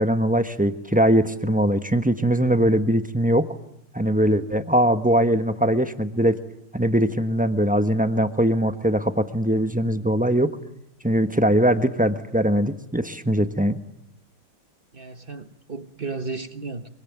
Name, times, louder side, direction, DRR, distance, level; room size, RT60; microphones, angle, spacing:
voice 1, 0.0-3.5 3.9-6.4 6.7-10.5 11.0-13.8, right 1 dB, 5° right, 9 dB, 0.7 m, -21 dB
voice 2, 14.9-16.9, right 4 dB, 35° right, 9 dB, 1.1 m, -34 dB
25.5 x 24.0 x 9.3 m, 0.79 s
omnidirectional pair, 2.3 m